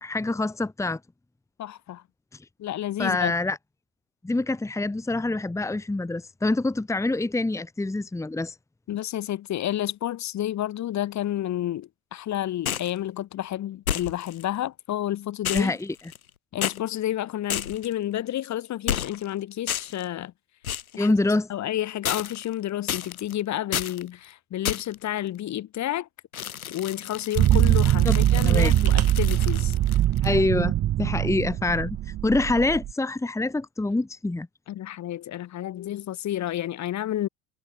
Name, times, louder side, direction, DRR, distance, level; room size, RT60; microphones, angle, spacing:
voice 1, 0.0-1.0 3.0-3.6 4.2-8.5 15.5-15.9 21.0-21.5 28.0-28.1 28.4-28.7 30.2-32.0 32.2-34.5, left 2 dB, 5° left, 1.6 m, -25 dB
voice 2, 1.6-2.0 2.6-3.3 8.9-15.7 16.5-20.3 20.9-21.1 21.5-26.1 26.7-29.7 34.7-37.3, left 12 dB, 40° left, 2.6 m, -30 dB
sound 1, 12.7-13.0 13.9-14.4 15.4-16.3 16.6-16.8 17.5-17.9 18.9-19.3 19.7-20.0 20.6-21.0 22.0-22.5 22.9-23.3 23.7-24.0 24.6-25.0 26.3-30.3, left 9 dB, 80° left, 2.6 m, -31 dB
sound 2, 27.4-32.9, right 13 dB, 35° right, 1.3 m, -22 dB
figure-of-eight pair, 70°, 42 cm